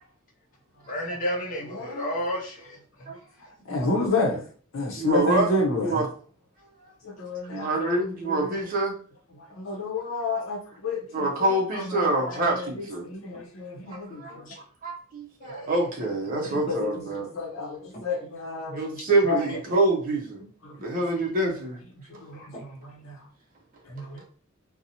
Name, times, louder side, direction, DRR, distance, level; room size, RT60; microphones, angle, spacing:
voice 1, 0.9-2.8 13.3-13.4 14.5-14.6 15.4-15.7 16.4-16.5 22.4-22.6, equal, 40° left, -3 dB, 0.5 m, -32 dB
voice 2, 1.6-2.1 3.7-4.4 4.7-6.0 7.0-8.5 9.4-14.5 16.4-16.9 17.3-18.8 19.2-19.4 20.6-20.8 22.1-23.2 23.9-24.2, left 3 dB, 75° left, -1 dB, 0.6 m, -30 dB
voice 3, 5.0-5.5 5.8-6.1 7.5-8.9 11.1-13.1 13.9-17.3 18.7-20.4 20.8-21.8, right 2 dB, 40° right, 0 dB, 0.5 m, -26 dB
2.6 x 2.0 x 2.7 m, 0.42 s
head